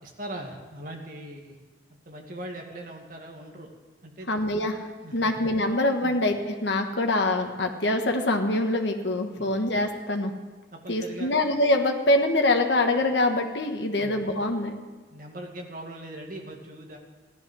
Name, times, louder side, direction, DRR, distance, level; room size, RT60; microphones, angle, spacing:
voice 1, 0.0-1.6 1.9-3.7 4.0-4.3 5.0-5.4 6.0-6.2 9.4-9.5 10.7-11.3 14.0-14.2 15.1-17.0, right 1 dB, 50° right, 1 dB, 2.0 m, -40 dB
voice 2, 4.3-4.8 5.1-10.3 10.9-14.7, left 2 dB, 75° left, 3 dB, 1.4 m, -24 dB
15.0 x 11.5 x 6.3 m, 1.3 s
head